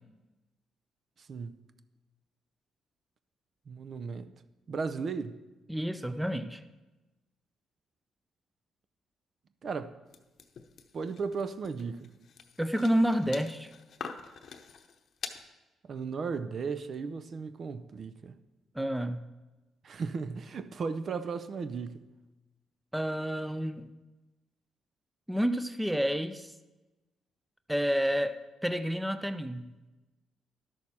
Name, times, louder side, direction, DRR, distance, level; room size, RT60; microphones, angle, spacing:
voice 1, 3.7-4.3 4.7-5.4 9.6-9.9 10.9-12.1 15.9-18.3 19.8-22.0, right 5 dB, 50° right, 0.5 m, -35 dB
voice 2, 5.7-6.6 12.6-13.7 18.7-19.2 22.9-23.9 25.3-26.5 27.7-28.4 28.6-29.7, equal, 5° right, 0.5 m, -29 dB
sound 1, 10.1-15.4, left 6 dB, 55° left, 0.8 m, -45 dB
12.0 x 6.4 x 4.2 m
cardioid pair, 90°, 0 cm